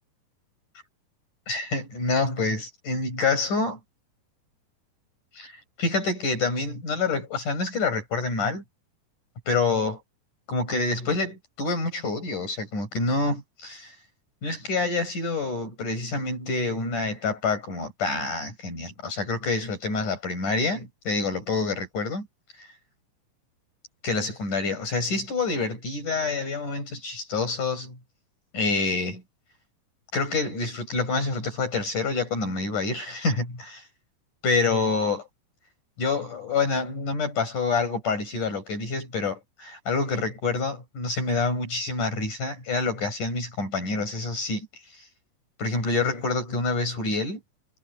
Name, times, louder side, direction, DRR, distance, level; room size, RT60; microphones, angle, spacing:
voice 1, 1.5-3.8 5.3-5.5 5.8-8.6 9.5-10.0 10.5-13.9 14.4-22.3 22.6-22.7 24.0-28.0 28.5-29.2 30.1-33.8 34.4-35.3 36.0-44.7 44.9-45.0 45.6-47.4, left 3 dB, 55° left, 9.4 m, -27 dB
omnidirectional pair, 4.2 m